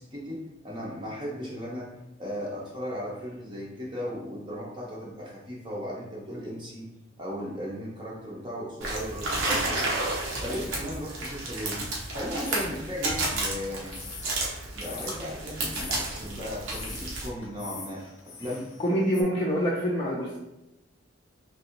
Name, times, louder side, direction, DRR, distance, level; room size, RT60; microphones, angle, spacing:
voice 1, 0.0-1.9 2.2-6.9 7.2-9.9 10.4-14.0 14.7-19.2, equal, 25° right, -4 dB, 0.6 m, -36 dB
sound 1, 8.8-17.3, right 2 dB, 90° right, 0.8 m, -31 dB
sound 2, 12.4-19.2, left 5 dB, 85° left, 0.7 m, -44 dB
voice 2, 18.8-20.4, equal, 30° left, -4 dB, 0.4 m, -26 dB
3.5 x 2.9 x 2.8 m, 0.95 s
head